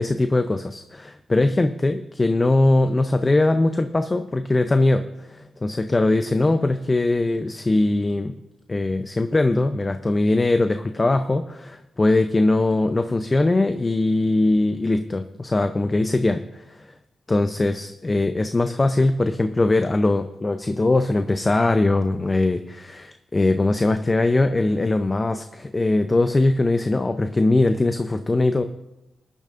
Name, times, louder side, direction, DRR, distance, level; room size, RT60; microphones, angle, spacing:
voice 1, 0.0-8.3 8.7-16.8 17.3-28.6, left 2 dB, 25° left, 8 dB, 0.6 m, -21 dB
22.0 x 10.5 x 2.5 m, 0.92 s
cardioid pair, 80°, 0 cm